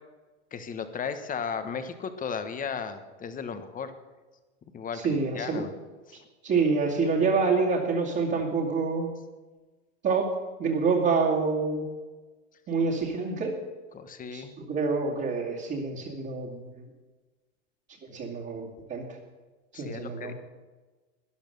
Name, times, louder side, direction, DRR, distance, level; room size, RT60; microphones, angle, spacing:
voice 1, 0.5-3.9 4.7-5.7 6.1-6.2 13.9-14.5 19.7-20.3, left 6 dB, 20° left, 10 dB, 1.2 m, -35 dB
voice 2, 4.9-5.7 6.4-9.1 10.0-10.3 10.6-11.9 12.7-13.6 14.3-16.8 18.1-19.2 19.7-20.3, right 4 dB, 30° right, -5 dB, 2.4 m, -27 dB
12.5 x 10.5 x 6.7 m, 1.3 s
hypercardioid pair, 115°, 36 cm